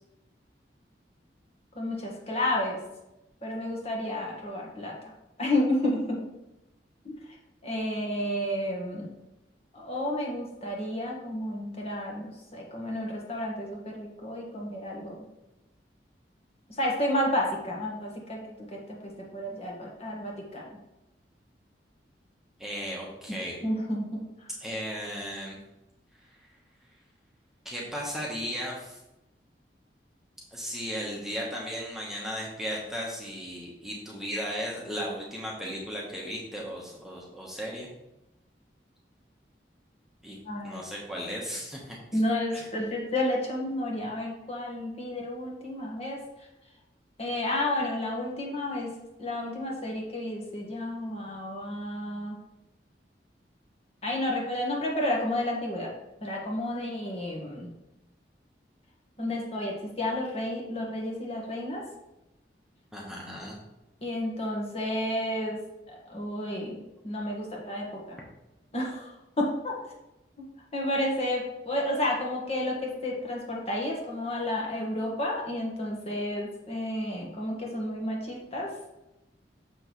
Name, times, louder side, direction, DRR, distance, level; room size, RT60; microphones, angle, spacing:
voice 1, 1.7-2.8 3.4-4.9 5.4-6.2 7.6-9.1 9.7-15.2 16.7-18.4 18.7-20.6 23.6-24.2 40.4-40.8 42.1-46.2 47.2-52.4 54.0-55.9 56.2-57.7 59.2-61.8 64.0-65.6 66.1-66.8 67.0-68.2 68.7-69.1 69.4-69.7 70.7-78.7, left 1 dB, 35° left, -2 dB, 1.5 m, -31 dB
voice 2, 22.6-23.6 24.6-25.6 27.6-29.0 30.5-37.9 40.2-40.4 40.6-42.2 42.5-42.7 62.9-63.6, equal, ahead, -4 dB, 1.1 m, -36 dB
6.8 x 6.2 x 3.1 m, 0.94 s
head